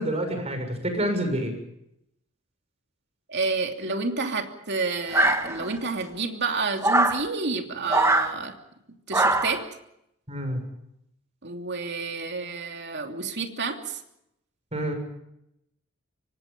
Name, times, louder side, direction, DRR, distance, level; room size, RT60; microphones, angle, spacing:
voice 1, 0.0-1.5 10.3-10.6 14.7-14.9, right 1 dB, 30° right, 6 dB, 6.6 m, -28 dB
voice 2, 3.3-8.5 9.1-9.6 11.4-14.0, right 4 dB, 55° right, 4 dB, 2.9 m, -29 dB
sound 1, 5.1-5.9 6.8-7.2 7.9-8.3 9.1-9.6, right 2 dB, 15° right, 1.7 m, -22 dB
25.5 x 24.5 x 5.4 m, 0.80 s
head